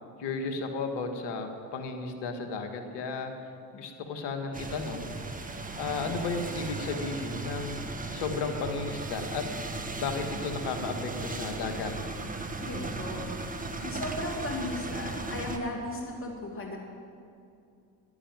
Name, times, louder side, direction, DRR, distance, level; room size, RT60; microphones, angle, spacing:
voice 1, 0.2-3.3 3.7-5.1 5.8-7.8 8.1-9.4 10.0-11.9, left 4 dB, 65° left, 5 dB, 2.0 m, -34 dB
sound 1, 4.5-15.6, right 3 dB, 20° right, 1.6 m, -36 dB
voice 2, 12.6-13.3 13.8-16.8, left 1 dB, 30° left, 0 dB, 2.6 m, -36 dB
11.0 x 10.5 x 9.1 m, 2.5 s
hypercardioid pair, 70°, 43 cm